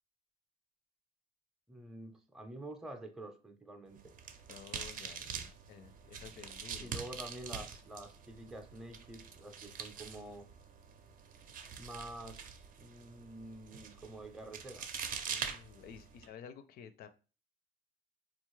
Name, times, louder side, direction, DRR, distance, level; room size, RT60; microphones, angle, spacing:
voice 1, 1.7-4.1 6.8-10.5 11.8-14.9, right 1 dB, 5° right, 4 dB, 0.6 m, -48 dB
sound 1, 3.9-16.3, right 6 dB, 55° right, 0.6 m, -45 dB
voice 2, 4.5-6.9 15.3-17.1, left 7 dB, 65° left, 11 dB, 0.5 m, -52 dB
4.0 x 2.4 x 3.1 m, 0.35 s
cardioid pair, 110°, 17 cm